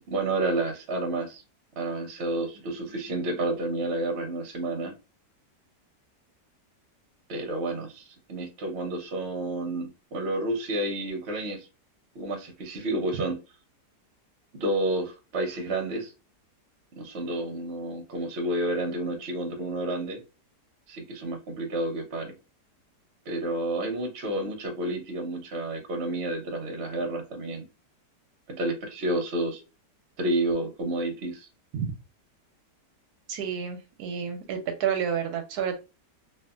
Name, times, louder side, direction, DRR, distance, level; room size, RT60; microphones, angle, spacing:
voice 1, 0.1-1.4 1.8-4.9 7.3-11.7 12.1-13.4 14.6-16.1 17.0-20.2 20.9-22.3 23.3-27.6 28.5-29.6 30.2-31.5, right 1 dB, 50° right, 2 dB, 0.9 m, -30 dB
voice 2, 33.3-35.8, right 8 dB, 75° right, 5 dB, 1.1 m, -30 dB
2.6 x 2.6 x 2.3 m, 0.30 s
omnidirectional pair, 1.8 m